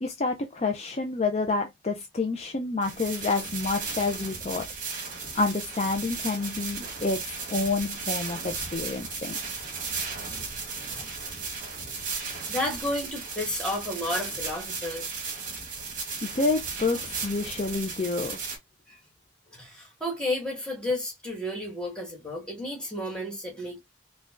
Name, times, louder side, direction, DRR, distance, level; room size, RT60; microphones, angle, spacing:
voice 1, 0.0-4.7 5.3-7.2 7.5-9.4 16.2-18.4, left 3 dB, 35° left, 0.5 m, -28 dB
sound 1, 2.8-18.6, right 4 dB, 45° right, 1.4 m, -35 dB
voice 2, 10.9-11.4 12.5-15.1 18.9-19.0 19.5-23.8, left 1 dB, 5° left, 1.9 m, -32 dB
5.1 x 2.3 x 2.4 m
head